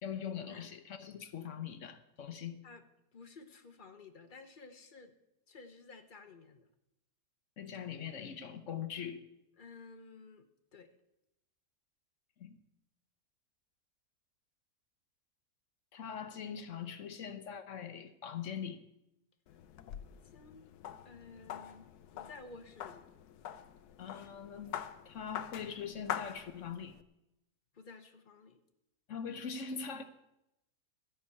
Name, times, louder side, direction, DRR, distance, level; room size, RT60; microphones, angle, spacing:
voice 1, 0.0-2.6 7.6-9.2 12.4-12.6 15.9-18.8 24.0-27.0 29.1-30.0, left 7 dB, 60° left, 1.0 m, -42 dB
voice 2, 3.1-5.1 5.5-6.7 9.6-10.9 20.2-20.6 21.0-23.1 27.7-28.6, left 4 dB, 35° left, 1.0 m, -53 dB
sound 1, 19.5-27.0, left 10 dB, 80° left, 1.2 m, -45 dB
13.5 x 6.4 x 8.3 m
omnidirectional pair, 1.7 m